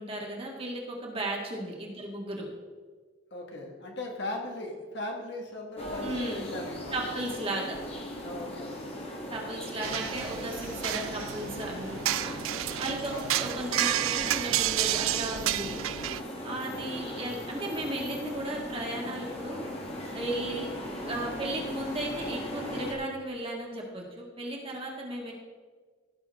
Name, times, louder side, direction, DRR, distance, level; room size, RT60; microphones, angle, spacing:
voice 1, 0.0-2.5 6.0-6.5 6.9-7.8 9.3-12.4 12.8-15.8 16.4-19.7 20.1-20.7 21.1-25.3, right 1 dB, 25° right, -1 dB, 1.7 m, -35 dB
voice 2, 3.3-7.0 8.2-8.8 13.1-13.4, left 2 dB, 60° left, 0 dB, 1.6 m, -38 dB
sound 1, 5.8-23.0, left 1 dB, 30° left, 1.3 m, -39 dB
sound 2, 9.8-16.2, right 13 dB, 85° right, 0.3 m, -31 dB
16.0 x 6.2 x 3.5 m, 1.5 s
head